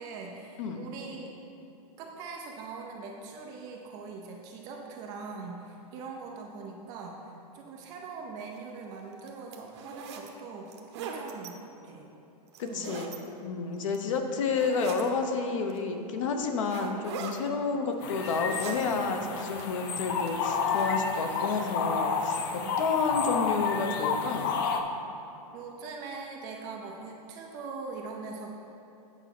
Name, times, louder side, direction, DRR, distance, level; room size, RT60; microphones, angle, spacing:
voice 1, 0.0-1.3 2.0-12.1 12.6-12.9 22.5-22.8 25.5-28.5, right 4 dB, 20° right, 1 dB, 0.4 m, -42 dB
sound 1, 8.4-8.6 9.1-10.3 10.7-11.5 12.5-13.2 13.7-14.2 14.5-15.1 15.7-15.8 16.7-17.4 17.9-18.9 19.2-19.8 20.3-20.9, right 6 dB, 45° right, 0.9 m, -41 dB
voice 2, 12.6-13.1 13.4-24.5, left 4 dB, 50° left, 5 dB, 0.9 m, -30 dB
sound 2, 18.0-24.8, left 5 dB, 35° left, 0.5 m, -30 dB
9.0 x 5.3 x 5.9 m, 2.9 s
supercardioid pair, 170°, 20 cm